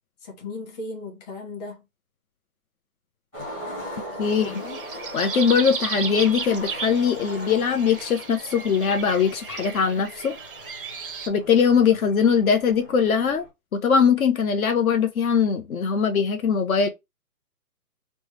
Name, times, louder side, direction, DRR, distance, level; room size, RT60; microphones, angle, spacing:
voice 1, 0.2-1.8 4.4-4.8, left 3 dB, 25° left, 1.0 m, -36 dB
Skateboard, 3.3-13.5, equal, 10° left, 0.6 m, -40 dB
voice 2, 4.2-4.5 5.1-10.3 11.3-13.5 13.7-16.9, left 6 dB, 65° left, 0.7 m, -21 dB
sound 1, 4.2-11.3, right 6 dB, 40° right, 0.4 m, -35 dB
3.3 x 2.1 x 3.1 m
hypercardioid pair, 155°, 45 cm